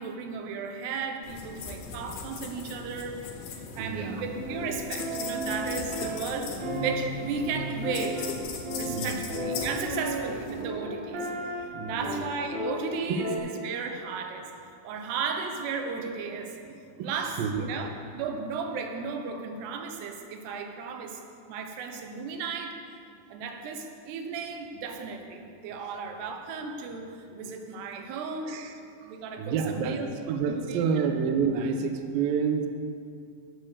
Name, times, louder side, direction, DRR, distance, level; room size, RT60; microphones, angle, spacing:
voice 1, 0.0-3.2 3.8-6.5 6.8-8.3 8.8-11.3 11.8-16.5 17.0-21.2 21.5-22.8 23.3-27.1 27.3-28.6 29.0-31.1, right 5 dB, 75° right, 4 dB, 2.9 m, -35 dB
sound 1, 1.2-10.6, left 5 dB, 70° left, 3.4 m, -39 dB
voice 2, 3.7-4.2 8.9-9.2 11.7-12.0 13.1-13.2 16.7-17.7 28.0-28.1 28.5-28.7 29.4-32.7, right 6 dB, 90° right, 6 dB, 2.0 m, -29 dB
sound 2, 4.1-13.4, right 1 dB, 40° right, 4.1 m, -34 dB
16.0 x 7.7 x 6.7 m, 2.4 s
omnidirectional pair, 5.2 m